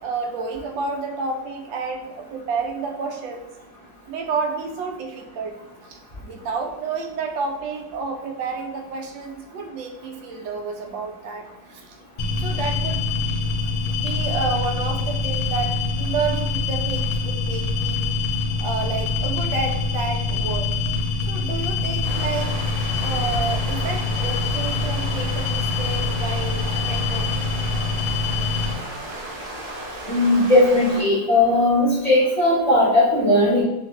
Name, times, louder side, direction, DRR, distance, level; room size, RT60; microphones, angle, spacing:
voice 1, 0.0-3.5 4.1-12.0 12.4-13.0 13.9-18.2 18.6-20.7 21.3-22.5 23.0-27.5, right 4 dB, 85° right, 3 dB, 1.3 m, -30 dB
sound 1, 12.2-28.7, left 4 dB, 75° left, 0.8 m, -24 dB
sound 2, 22.0-31.0, right 1 dB, 55° right, 0.6 m, -34 dB
voice 2, 30.1-33.6, left 1 dB, 40° left, -10 dB, 0.5 m, -17 dB
3.2 x 2.5 x 2.9 m, 1.0 s
omnidirectional pair, 2.0 m